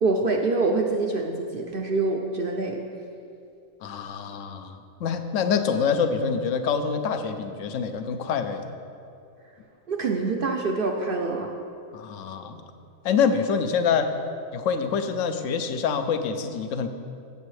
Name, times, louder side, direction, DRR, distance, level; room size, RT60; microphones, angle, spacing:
voice 1, 0.0-2.8 9.9-11.5, right 3 dB, 55° right, 2 dB, 0.6 m, -25 dB
voice 2, 3.8-8.7 11.9-12.6 13.0-14.1 14.5-16.9, left 6 dB, 70° left, 8 dB, 1.0 m, -26 dB
13.5 x 7.4 x 3.2 m, 2.5 s
omnidirectional pair, 1.4 m